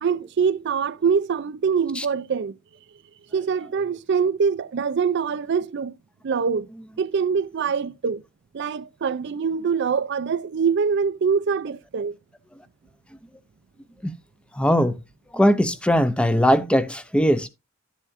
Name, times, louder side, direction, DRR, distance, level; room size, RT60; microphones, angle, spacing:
voice 1, 0.0-2.6 3.3-5.9 6.2-6.7 7.0-8.2 8.5-12.1, right 6 dB, 55° right, 0.4 m, -24 dB
voice 2, 14.6-15.0 15.3-17.5, equal, 5° left, 0.6 m, -20 dB
12.0 x 7.2 x 2.5 m
head